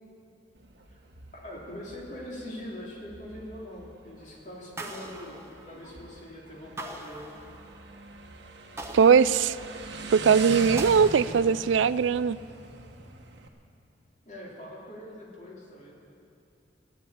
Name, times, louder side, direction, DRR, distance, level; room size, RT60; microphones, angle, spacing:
Motorcycle, 0.6-13.5, right 3 dB, 65° right, 1.2 m, -42 dB
voice 1, 1.3-7.3 14.2-15.9, left 1 dB, 45° left, -3 dB, 2.9 m, -42 dB
sound 1, 4.8-6.1 6.8-8.0 8.8-10.0 10.8-11.9, right 2 dB, 15° right, 1.0 m, -42 dB
voice 2, 8.9-9.6 10.1-12.4, right 6 dB, 85° right, 17 dB, 0.4 m, -20 dB
15.0 x 9.7 x 8.6 m, 2.6 s
head